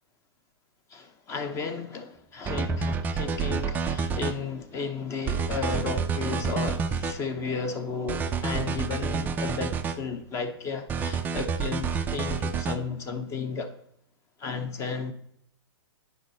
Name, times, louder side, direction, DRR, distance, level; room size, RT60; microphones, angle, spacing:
voice 1, 0.9-13.7 14.4-15.1, left 5 dB, 20° left, 0.8 m, -34 dB
sound 1, 2.5-4.3 5.3-7.2 8.1-10.0 10.9-12.8, right 5 dB, 15° right, 0.4 m, -28 dB
9.7 x 5.5 x 4.0 m
hypercardioid pair, 135°, 14 cm